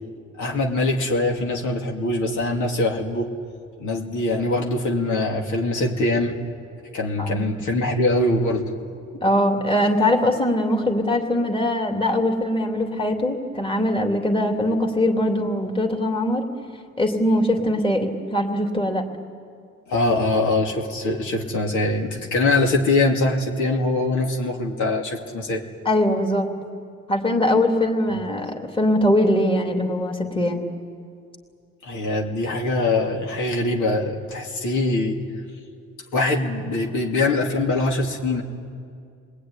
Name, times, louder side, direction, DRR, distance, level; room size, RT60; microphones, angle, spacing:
voice 1, 0.4-3.3 3.8-6.4 6.9-8.7 19.9-25.6 31.8-35.2 36.1-38.4, left 2 dB, 75° left, 0 dB, 2.9 m, -23 dB
voice 2, 9.2-16.4 17.0-19.0 25.8-26.5 27.1-30.6, left 1 dB, 15° left, 2 dB, 3.1 m, -21 dB
28.0 x 20.0 x 9.9 m, 2.3 s
cardioid pair, 90°, 30 cm